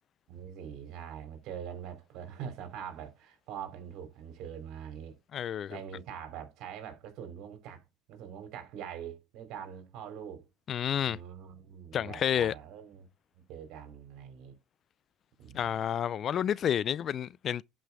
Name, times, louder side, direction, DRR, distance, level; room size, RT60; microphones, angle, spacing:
voice 1, 0.3-5.2 5.7-7.8 8.1-10.5 11.0-13.1 13.3-14.6 15.4-15.8, right 8 dB, 65° right, 3.4 m, -43 dB
voice 2, 5.3-5.8 10.7-11.2 11.9-12.5 15.5-17.6, left 9 dB, 45° left, 0.4 m, -30 dB
11.5 x 5.4 x 3.5 m
supercardioid pair, 95°, 0 cm